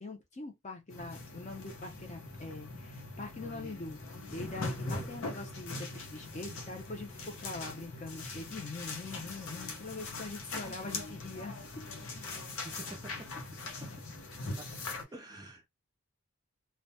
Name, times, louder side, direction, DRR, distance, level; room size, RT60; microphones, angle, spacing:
voice 1, 0.0-4.0 4.3-11.8, left 3 dB, 35° left, 0.6 m, -43 dB
sound 1, 0.9-15.0, left 3 dB, 75° left, 0.7 m, -41 dB
voice 2, 12.6-13.3 14.6-14.7 15.1-15.7, right 2 dB, 15° right, 0.4 m, -47 dB
2.2 x 2.1 x 2.7 m
head